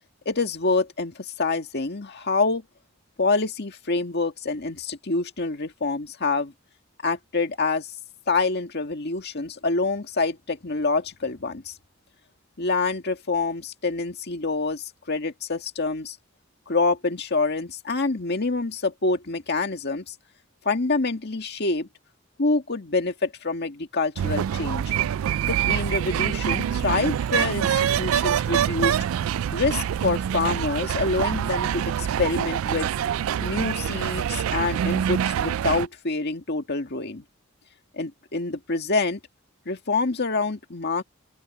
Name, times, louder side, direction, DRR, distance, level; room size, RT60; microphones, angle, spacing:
voice 1, 0.3-2.6 3.2-6.5 7.0-7.9 8.3-11.7 12.6-16.2 16.7-20.1 20.7-21.9 22.4-24.9 25.5-29.0 29.5-32.9 33.4-37.2 37.9-39.2 39.7-41.0, left 3 dB, 55° left, 1.9 m, -26 dB
sound 1, 24.2-35.9, right 9 dB, 90° right, 0.3 m, -25 dB
open air
head